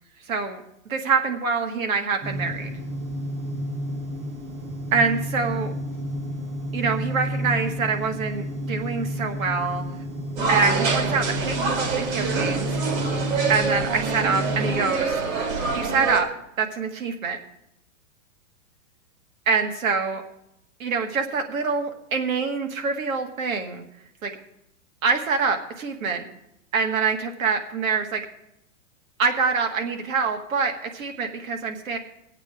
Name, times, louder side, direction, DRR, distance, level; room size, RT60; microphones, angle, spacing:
voice 1, 0.3-2.7 4.9-5.7 6.7-9.9 10.5-12.7 13.5-15.2 15.7-16.3 16.6-17.4 19.5-20.2 20.8-23.8 24.2-24.3 25.0-26.3 26.7-28.2 29.2-32.0, right 5 dB, 75° right, 5 dB, 2.0 m, -25 dB
sound 1, 2.2-14.7, equal, 20° right, 0.7 m, -31 dB
sound 2, 10.4-16.2, right 4 dB, 55° right, 2.0 m, -26 dB
21.0 x 8.2 x 3.6 m, 0.81 s
hypercardioid pair, 160°, 41 cm